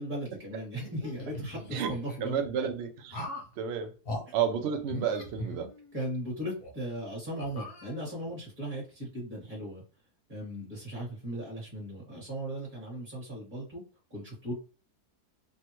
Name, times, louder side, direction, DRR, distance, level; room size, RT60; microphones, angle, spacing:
voice 1, 0.0-2.7 5.9-9.8 10.3-13.8 14.1-14.5, right 1 dB, 30° right, 1.4 m, -37 dB
sound 1, 0.7-2.2 3.1-3.5 4.0-4.2 4.8-6.1 6.6-6.7 7.4-8.3, left 1 dB, 45° left, 0.8 m, -40 dB
voice 2, 2.2-3.3 3.6-3.9 4.3-5.7, right 8 dB, 75° right, 0.6 m, -31 dB
3.3 x 2.1 x 2.9 m
omnidirectional pair, 1.7 m